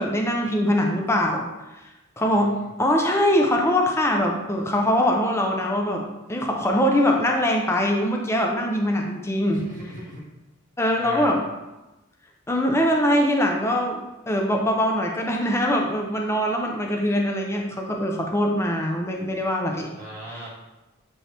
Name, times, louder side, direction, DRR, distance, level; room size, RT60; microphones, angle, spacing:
voice 1, 0.0-1.4 2.2-6.0 6.3-9.6 10.8-11.4 12.5-19.9 20.3-20.4, equal, 15° left, 1 dB, 0.5 m, -22 dB
voice 2, 9.5-10.2 11.0-11.4 20.0-20.5, right 1 dB, 40° right, -7 dB, 1.5 m, -37 dB
8.9 x 3.2 x 3.3 m, 1.0 s
head